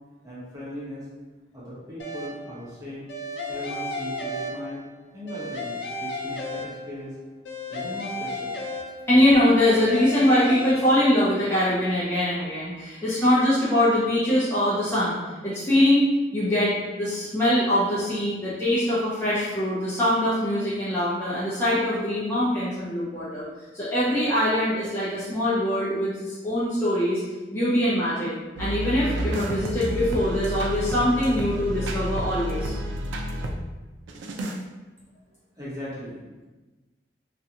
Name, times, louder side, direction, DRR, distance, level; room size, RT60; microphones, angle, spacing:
voice 1, 0.2-1.1 1.5-3.1 3.5-4.8 5.1-7.1 7.7-8.5 35.5-36.2, equal, 20° right, -8 dB, 0.9 m, -38 dB
sound 1, 2.0-2.6 3.1-4.9 5.3-7.1 7.4-9.2 9.6-10.7, left 1 dB, 75° left, 0.4 m, -33 dB
voice 2, 9.1-15.2 15.4-23.4 23.7-27.2 27.5-28.3 28.6-32.8, left 1 dB, 15° left, -10 dB, 0.5 m, -23 dB
sound 2, 28.6-33.6 34.1-34.6, equal, 85° right, 0.3 m, -30 dB
2.4 x 2.2 x 2.8 m, 1.2 s
head